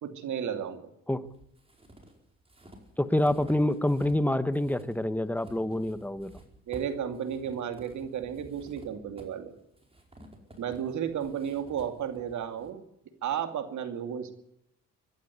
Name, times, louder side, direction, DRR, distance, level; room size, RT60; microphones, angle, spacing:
voice 1, 0.0-0.9 6.7-9.5 10.6-12.8 13.2-14.3, right 8 dB, 70° right, 8 dB, 2.5 m, -33 dB
sound 1, 1.2-4.3 4.5-12.7, right 1 dB, 20° right, 4.7 m, -52 dB
voice 2, 3.0-6.3, left 1 dB, 5° left, 12 dB, 1.2 m, -27 dB
23.5 x 11.5 x 9.5 m, 0.77 s
cardioid pair, 90°, 30 cm